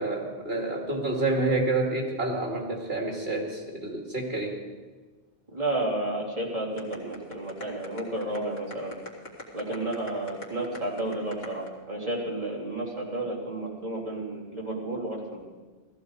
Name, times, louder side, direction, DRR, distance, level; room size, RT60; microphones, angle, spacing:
voice 1, 0.0-4.6, right 2 dB, 65° right, 0 dB, 2.8 m, -28 dB
voice 2, 5.5-9.0 9.5-15.4, right 1 dB, 35° right, -4 dB, 3.3 m, -32 dB
sound 1, 6.8-11.7, left 2 dB, 65° left, 2.4 m, -41 dB
17.0 x 14.0 x 4.8 m, 1.3 s
omnidirectional pair, 1.1 m